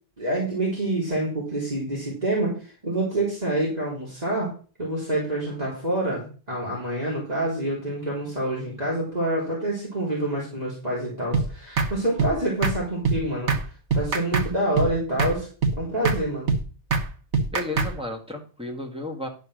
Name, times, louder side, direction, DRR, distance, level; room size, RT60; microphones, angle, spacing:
voice 1, 0.2-4.5 4.8-13.6 13.9-15.5 15.8-16.5, right 1 dB, 35° right, -6 dB, 3.7 m, -27 dB
sound 1, 11.3-11.5 11.8-11.9 12.2-12.3 12.6-12.8 13.0-13.2 13.5-13.6 13.9-14.5 14.8-14.9 15.2-15.3 15.6-15.8 16.0-16.2 16.5-16.6 16.9-17.1 17.3-17.9, right 4 dB, 75° right, 1.5 m, -23 dB
voice 2, 17.5-19.3, left 2 dB, 5° right, 1 dB, 1.8 m, -33 dB
11.0 x 5.3 x 6.3 m, 0.37 s
omnidirectional pair, 1.2 m